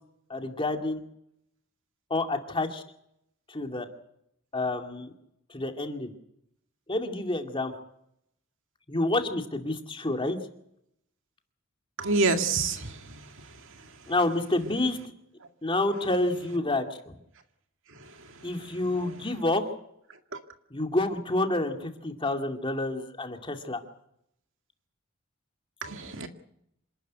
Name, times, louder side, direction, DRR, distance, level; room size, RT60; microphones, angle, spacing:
voice 1, 0.3-1.0 2.1-2.8 3.5-3.9 4.5-5.1 5.5-6.1 6.9-7.8 8.9-10.4 14.1-15.1 15.6-17.1 18.4-19.6 20.7-23.8, left 2 dB, 25° left, 5 dB, 2.4 m, -29 dB
voice 2, 12.0-14.1 17.9-18.5 18.9-19.4 25.8-26.3, right 3 dB, 65° right, 6 dB, 2.2 m, -30 dB
26.5 x 12.5 x 9.5 m, 0.75 s
head